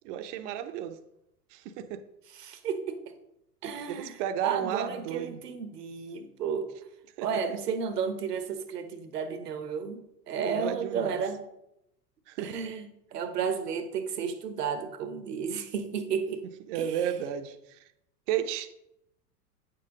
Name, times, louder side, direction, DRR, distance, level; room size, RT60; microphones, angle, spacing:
voice 1, 0.0-1.0 1.5-2.0 3.9-5.4 7.2-7.3 10.4-11.2 12.3-12.5 16.7-17.9 18.3-18.8, right 10 dB, 50° right, 0.8 m, -33 dB
voice 2, 2.4-3.1 3.6-6.7 7.2-11.4 12.4-16.5 16.7-17.0, right 6 dB, 75° right, 1.1 m, -33 dB
9.0 x 6.8 x 3.7 m
figure-of-eight pair, 90°, 48 cm